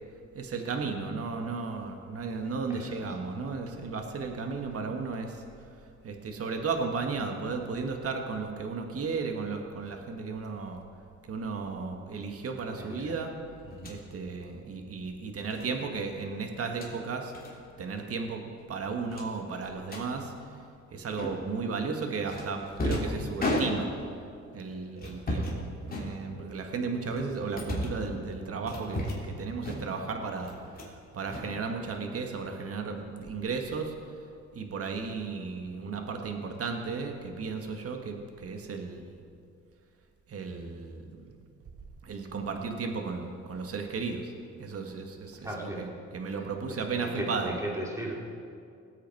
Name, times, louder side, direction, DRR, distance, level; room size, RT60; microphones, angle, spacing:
voice 1, 0.3-5.4 6.0-10.8 11.3-13.3 13.8-17.3 17.8-18.4 18.7-20.3 20.9-23.9 24.5-30.5 31.1-33.9 34.5-39.2 40.3-41.3 42.0-44.3 44.6-47.6, right 4 dB, 50° right, 4 dB, 1.6 m, -34 dB
voice 2, 2.7-3.0 12.8-13.2 13.6-13.9 25.3-25.7 45.4-45.9 46.7-48.2, right 1 dB, 10° right, -2 dB, 2.9 m, -37 dB
sound 1, 13.7-14.0 15.5-15.7 16.6-16.9 17.3-17.5 17.8-18.0 18.3-18.4 19.1-20.1 21.2-21.6 22.3-24.2 25.0-25.6 25.9-26.6 27.1-28.1 28.7-29.3 29.6-30.1 30.4-31.0 31.3-32.1, left 1 dB, 30° left, 3.2 m, -34 dB
19.0 x 8.3 x 4.7 m, 2.4 s
cardioid pair, 90°, 30 cm